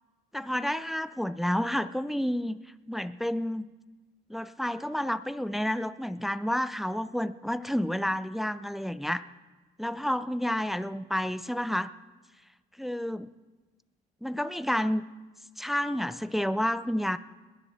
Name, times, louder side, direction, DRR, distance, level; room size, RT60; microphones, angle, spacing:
voice 1, 0.3-2.6 2.9-3.7 4.3-9.2 9.8-11.9 12.8-13.3 14.2-15.0 15.6-17.2, equal, ahead, 14 dB, 0.5 m, -30 dB
20.0 x 7.7 x 6.6 m, 1.3 s
cardioid pair, 90°, 20 cm